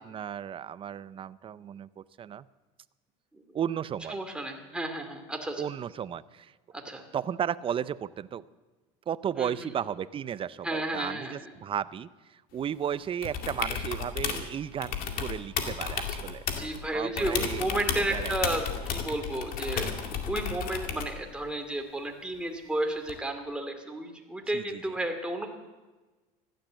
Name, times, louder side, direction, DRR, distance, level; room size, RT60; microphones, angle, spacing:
voice 1, 0.0-2.4 3.5-4.2 5.6-6.5 7.1-8.4 9.1-17.7 18.1-18.3 24.5-24.8, right 9 dB, 30° right, 17 dB, 0.6 m, -34 dB
voice 2, 4.1-5.6 6.7-7.0 9.4-9.7 10.6-11.5 16.5-18.6 18.9-25.5, right 1 dB, 5° right, 3 dB, 2.5 m, -33 dB
sound 1, 13.2-14.5 14.8-16.8 17.2-21.2 23.1-23.2, left 7 dB, 55° left, 2.3 m, -33 dB
15.5 x 12.0 x 7.6 m, 1.2 s
supercardioid pair, 105°, 18 cm